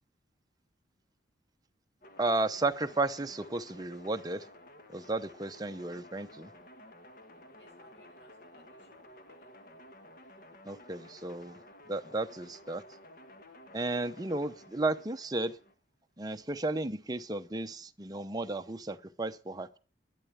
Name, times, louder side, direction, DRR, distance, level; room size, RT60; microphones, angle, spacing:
sound 1, 2.0-15.7, left 1 dB, 50° left, 2.0 m, -54 dB
voice 1, 2.2-4.5 4.9-6.5 10.6-11.6 11.9-12.8 13.7-15.6 16.2-19.8, right 2 dB, 20° right, 0.8 m, -33 dB
voice 2, 7.6-9.5 12.0-12.2, left 1 dB, 80° left, 7.7 m, -61 dB
12.5 x 10.5 x 7.2 m
head